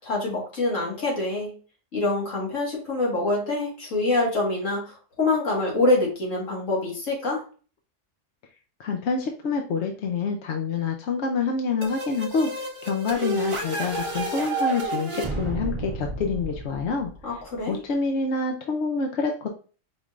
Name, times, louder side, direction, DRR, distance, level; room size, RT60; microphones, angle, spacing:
voice 1, 0.0-1.5 1.9-7.4 17.2-17.8, left 2 dB, 90° left, -2 dB, 2.0 m, -25 dB
voice 2, 8.8-12.5 12.8-17.1 17.7-19.5, left 4 dB, 70° left, 2 dB, 0.9 m, -27 dB
sound 1, 11.8-17.5, right 2 dB, 30° right, 0.8 m, -31 dB
5.2 x 3.2 x 2.4 m, 0.38 s
omnidirectional pair, 1.3 m